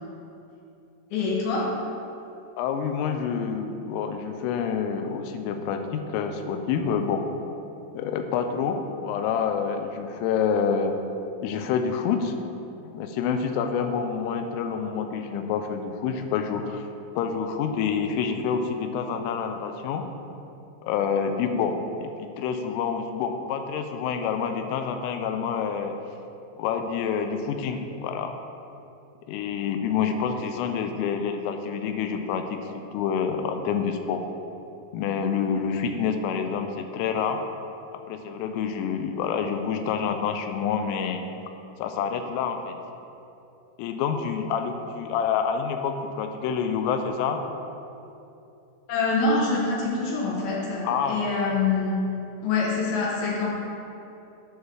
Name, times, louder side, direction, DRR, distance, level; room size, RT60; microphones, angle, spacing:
voice 1, 1.1-1.7 48.9-52.0 52.4-53.5, left 3 dB, 70° left, -4 dB, 2.4 m, -25 dB
voice 2, 2.6-7.2 7.9-10.9 11.4-12.3 12.8-16.9 17.2-20.0 20.8-25.9 26.6-28.3 29.3-32.6 32.9-34.2 34.9-37.4 38.1-41.2 41.8-42.7 43.8-47.4 50.8-51.2, left 6 dB, 90° left, 6 dB, 3.2 m, -27 dB
9.5 x 4.0 x 6.3 m, 2.8 s
omnidirectional pair, 5.7 m